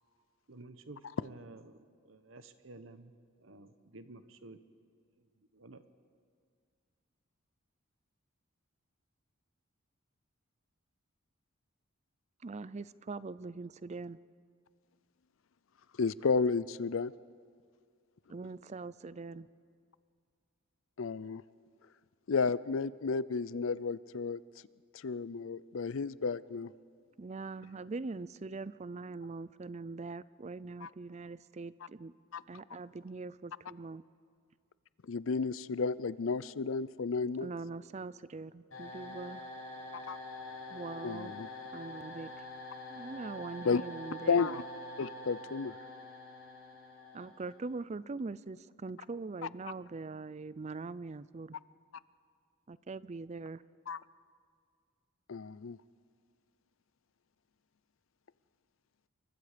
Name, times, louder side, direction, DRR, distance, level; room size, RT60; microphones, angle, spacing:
voice 1, 0.5-4.6 5.2-5.8, right 2 dB, 65° right, 11 dB, 1.1 m, -52 dB
voice 2, 12.4-14.2 18.3-19.5 27.2-32.2 32.5-34.0 37.4-39.4 40.7-41.3 41.7-42.3 42.9-44.6 47.1-51.6 52.7-53.6, right 3 dB, 30° right, 17 dB, 0.5 m, -42 dB
voice 3, 16.0-17.1 21.0-21.4 22.3-24.4 25.0-26.7 30.8-30.9 32.3-32.4 35.1-37.5 39.9-40.2 41.0-41.5 43.6-43.8 44.3-44.6 45.0-45.7 53.9-54.0 55.3-55.8, left 4 dB, 65° left, 18 dB, 0.5 m, -32 dB
sound 1, 38.7-47.6, left 1 dB, 85° left, 7.1 m, -46 dB
28.5 x 23.0 x 5.1 m, 2.1 s
head